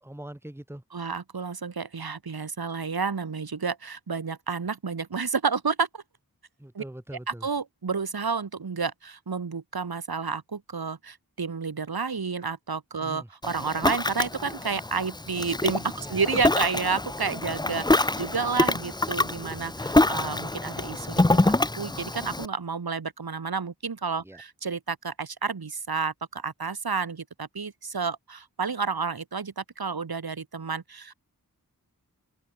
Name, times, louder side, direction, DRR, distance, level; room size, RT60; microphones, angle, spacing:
voice 1, 0.0-0.8 6.6-7.5 13.0-13.3 16.0-16.4 24.2-24.4, right 1 dB, 5° right, 1.3 m, -42 dB
voice 2, 0.9-6.0 6.7-6.8 7.3-31.1, right 5 dB, 85° right, 1.4 m, -30 dB
Ocean, 13.4-22.5, left 2 dB, 10° left, 0.5 m, -26 dB
open air
wide cardioid pair, 45°, 36 cm